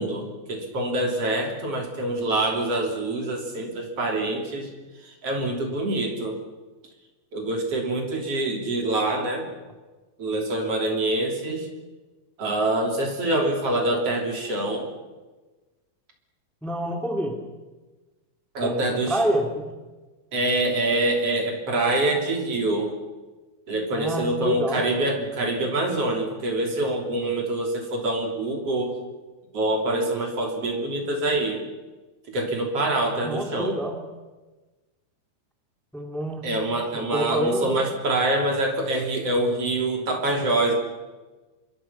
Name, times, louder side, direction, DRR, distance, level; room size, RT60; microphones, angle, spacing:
voice 1, 0.0-4.7 5.0-6.4 7.3-9.5 10.2-11.7 12.4-14.9 18.5-19.2 20.3-22.9 23.7-28.9 29.5-31.6 32.3-33.8 36.4-40.7, right 2 dB, 35° right, 2 dB, 3.6 m, -25 dB
voice 2, 16.6-17.4 18.6-19.7 23.9-24.8 33.2-34.0 35.9-36.5 36.9-37.8, right 1 dB, ahead, 3 dB, 0.6 m, -28 dB
26.5 x 23.5 x 5.8 m, 1.2 s
omnidirectional pair, 5.2 m